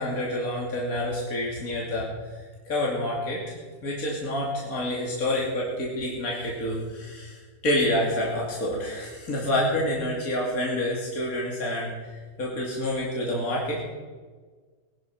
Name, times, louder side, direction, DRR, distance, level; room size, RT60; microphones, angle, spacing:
voice 1, 0.0-2.1 2.6-12.1 12.4-13.8, left 1 dB, 55° left, -4 dB, 3.0 m, -28 dB
20.5 x 12.5 x 4.7 m, 1.4 s
omnidirectional pair, 1.8 m